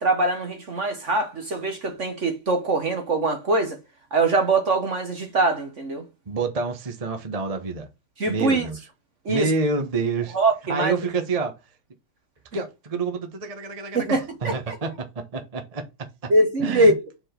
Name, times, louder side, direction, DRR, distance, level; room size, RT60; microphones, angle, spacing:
voice 1, 0.0-3.8 4.1-6.0 8.2-8.6 9.2-9.5 10.3-10.9 13.9-14.7 16.3-16.9, right 2 dB, 45° right, 1.2 m, -22 dB
voice 2, 6.3-7.9 8.3-8.8 9.3-10.4 10.7-11.5 12.5-16.3 16.6-16.9, right 4 dB, 25° right, 0.8 m, -28 dB
5.0 x 4.5 x 5.8 m
omnidirectional pair, 2.3 m